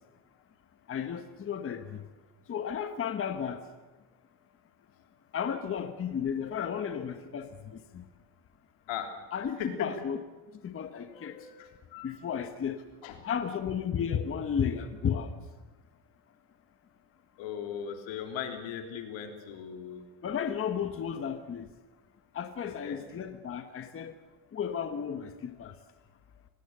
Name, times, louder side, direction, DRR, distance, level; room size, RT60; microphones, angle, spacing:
voice 1, 0.9-2.0 2.5-3.6 5.3-8.0 9.3-10.2 10.6-11.4 12.0-12.8 13.2-15.3 20.2-21.7 22.3-24.1 24.5-25.7, left 7 dB, 30° left, 8 dB, 1.2 m, -33 dB
voice 2, 11.1-12.1 13.0-13.2 17.4-20.0 22.6-23.0, left 8 dB, 80° left, 4 dB, 3.5 m, -38 dB
24.5 x 18.5 x 6.7 m, 1.2 s
cardioid pair, 150°, 44 cm